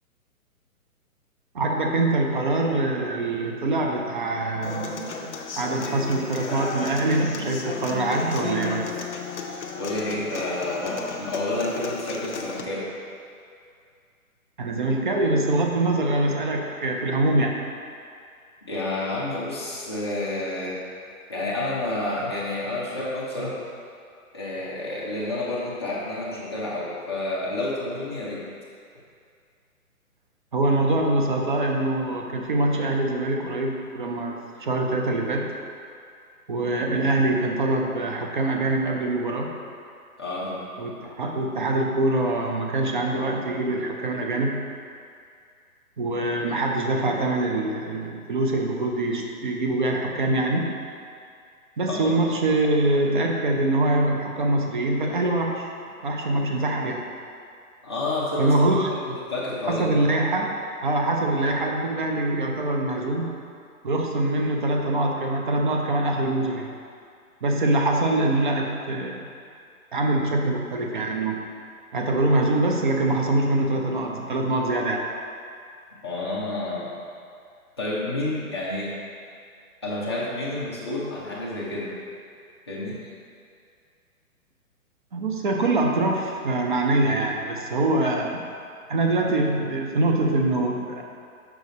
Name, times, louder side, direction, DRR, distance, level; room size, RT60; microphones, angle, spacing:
voice 1, 1.5-5.1 5.6-8.9 14.6-17.6 30.5-35.5 36.5-39.5 40.8-44.6 46.0-50.7 51.8-55.7 56.0-57.0 58.4-58.9 59.7-60.5 60.8-63.3 63.8-66.7 67.4-69.3 69.9-71.4 71.9-75.1 85.1-88.4 88.9-91.0, right 2 dB, 35° right, 1 dB, 0.6 m, -24 dB
Human voice / Acoustic guitar, 4.6-12.6, left 5 dB, 50° left, 0.8 m, -34 dB
voice 2, 9.7-12.9 18.7-20.8 21.3-23.6 24.3-28.4 36.9-37.0 40.2-40.6 51.9-52.1 57.8-58.5 59.0-60.0 76.0-76.9 77.8-78.9 79.8-81.9 82.7-83.0, left 2 dB, 20° left, -7 dB, 0.5 m, -29 dB
6.7 x 4.7 x 4.1 m, 2.4 s
hypercardioid pair, 160°, 44 cm